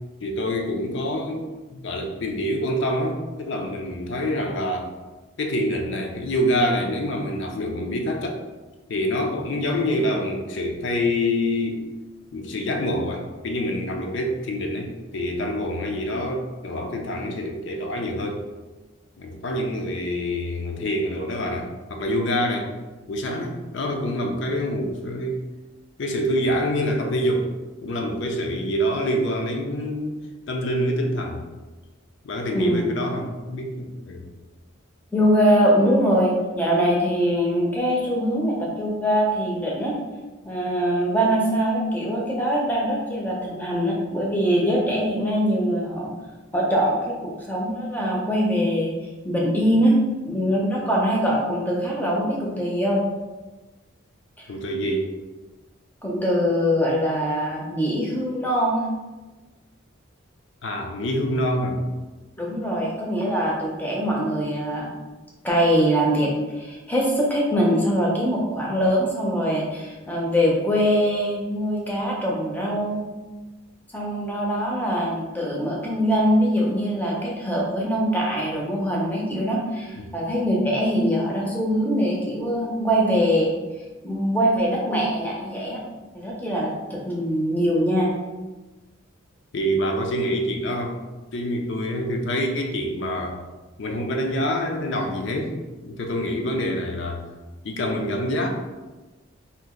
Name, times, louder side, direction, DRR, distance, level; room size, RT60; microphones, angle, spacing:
voice 1, 0.2-4.9 5.4-8.4 8.9-11.8 12.3-18.4 19.2-22.7 23.1-25.4 26.0-27.5 27.8-30.1 30.5-31.4 32.2-34.3 54.5-55.1 60.6-61.8 80.0-80.1 89.5-91.0 91.3-93.4 93.8-97.2 97.6-98.6, equal, 60° left, 3 dB, 0.4 m, -26 dB
voice 2, 32.5-32.9 35.1-39.9 40.4-46.1 46.5-48.9 49.2-53.0 56.0-58.9 62.4-64.9 65.4-73.1 73.9-83.5 84.0-85.8 86.1-88.1, equal, 10° left, -3 dB, 0.5 m, -23 dB
2.8 x 2.4 x 3.7 m, 1.2 s
head